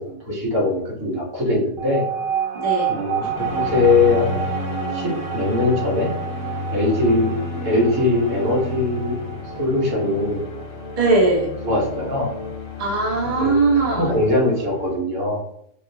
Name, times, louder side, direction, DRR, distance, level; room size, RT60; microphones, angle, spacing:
voice 1, 0.1-2.0 2.9-4.4 4.9-6.1 6.7-7.3 7.6-9.2 9.6-10.4 11.6-12.3 13.4-13.5 13.9-15.4, left 2 dB, 85° right, -4 dB, 1.7 m, -21 dB
sound 1, 1.8-12.7, right 8 dB, 65° right, 0.5 m, -30 dB
voice 2, 2.5-2.9 3.2-3.3 11.0-11.5 12.8-14.1, right 3 dB, 30° right, -3 dB, 0.9 m, -20 dB
sound 2, 3.3-15.0, left 3 dB, 55° left, 0.9 m, -31 dB
4.2 x 2.4 x 2.7 m, 0.71 s
omnidirectional pair, 1.5 m